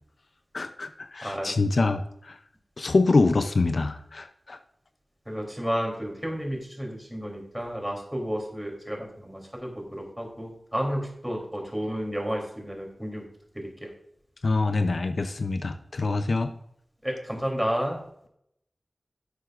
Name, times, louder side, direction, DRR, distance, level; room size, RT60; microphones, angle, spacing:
voice 1, 0.5-2.4 2.8-4.6 14.4-16.5, left 3 dB, 65° left, 9 dB, 0.6 m, -25 dB
voice 2, 1.2-1.5 5.2-13.2 13.5-13.9 17.0-18.0, equal, 5° right, 1 dB, 3.2 m, -31 dB
11.0 x 7.7 x 2.5 m, 0.73 s
wide cardioid pair, 55°, 0 cm